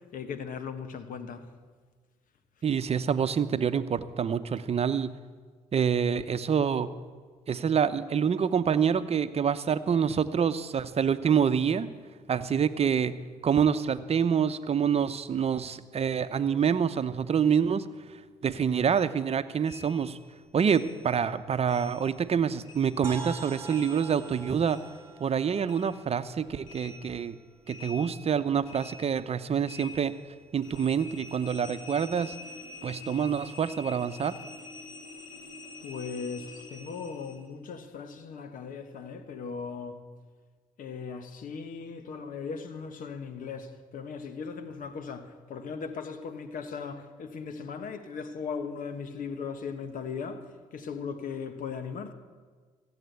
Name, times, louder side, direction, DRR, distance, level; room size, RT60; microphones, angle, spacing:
voice 1, 0.0-1.5 35.8-40.0 40.8-52.1, left 5 dB, 60° left, 1.4 m, -38 dB
voice 2, 2.6-5.1 5.7-6.9 7.5-11.9 12.3-13.1 13.4-17.8 18.4-20.2 20.5-24.8 25.2-27.4 27.7-30.1 30.5-32.3 32.8-34.4, right 7 dB, 45° right, 0.8 m, -26 dB
sound 1, 19.7-22.4 22.6-25.4 25.7-37.5, left 3 dB, 85° left, 2.2 m, -47 dB
sound 2, 23.0-26.8, right 4 dB, 15° right, 2.1 m, -44 dB
15.5 x 8.7 x 8.2 m
hypercardioid pair, 60°, 15 cm